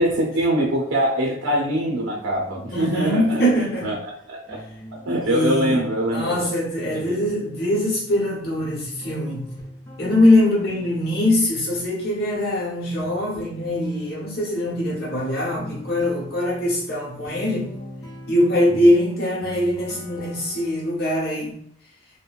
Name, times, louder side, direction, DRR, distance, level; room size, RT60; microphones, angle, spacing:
voice 1, 0.0-4.0 4.3-4.6 4.9-6.5 6.9-7.2 18.8-18.9, right 1 dB, 85° right, -2 dB, 0.6 m, -23 dB
sound 1, 1.1-21.0, equal, 20° left, 0.6 m, -42 dB
voice 2, 2.7-3.9 5.2-5.8 6.1-9.5 10.0-17.7 18.3-21.6, left 1 dB, 55° left, -4 dB, 1.1 m, -22 dB
3.0 x 2.1 x 2.3 m, 0.68 s
head